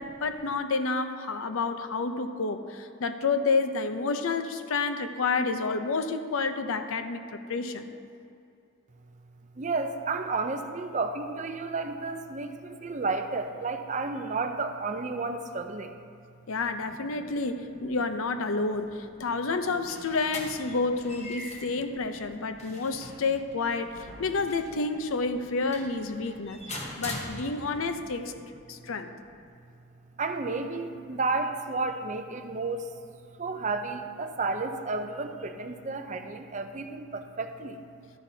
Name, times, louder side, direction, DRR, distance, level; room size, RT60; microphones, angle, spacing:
voice 1, 0.0-7.9 16.5-28.3 28.7-29.1, left 4 dB, 80° left, 8 dB, 0.6 m, -29 dB
voice 2, 9.6-15.9 30.2-32.9 33.4-37.8, right 3 dB, 35° right, 7 dB, 0.5 m, -32 dB
sound 1, 19.6-27.9, left 1 dB, 30° left, 1.1 m, -43 dB
12.5 x 10.0 x 2.8 m, 2.5 s
head